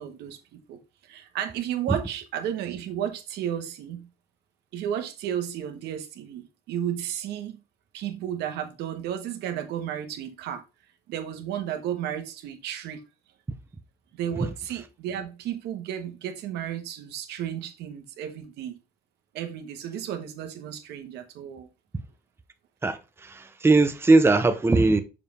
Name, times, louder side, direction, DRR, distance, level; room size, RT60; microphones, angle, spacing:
voice 1, 0.0-4.1 4.7-7.6 7.9-10.6 11.1-13.0 14.2-18.7 19.3-21.7, right 10 dB, 85° right, 1.4 m, -33 dB
voice 2, 23.3-25.0, right 3 dB, 15° right, 0.7 m, -19 dB
6.8 x 5.3 x 3.5 m
cardioid pair, 110°, 17 cm